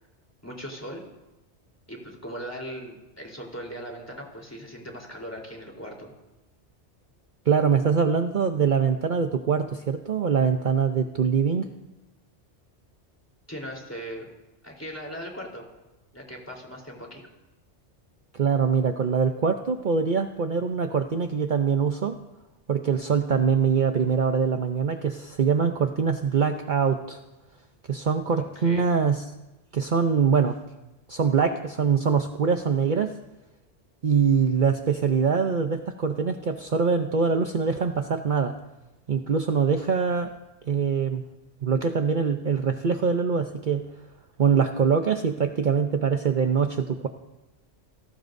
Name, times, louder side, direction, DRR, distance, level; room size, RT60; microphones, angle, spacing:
voice 1, 0.4-1.0 1.9-6.1 13.5-14.3 14.6-15.6 16.1-17.3 28.3-28.9, equal, 15° left, -1 dB, 3.7 m, -39 dB
voice 2, 7.5-11.7 18.3-22.2 22.7-27.2 27.9-29.2 29.7-30.6 31.1-33.1 34.0-38.6 39.1-40.3 40.7-41.2 41.6-43.8 44.4-47.1, right 6 dB, 50° right, 5 dB, 0.9 m, -23 dB
29.5 x 17.5 x 2.7 m, 1.0 s
omnidirectional pair, 1.1 m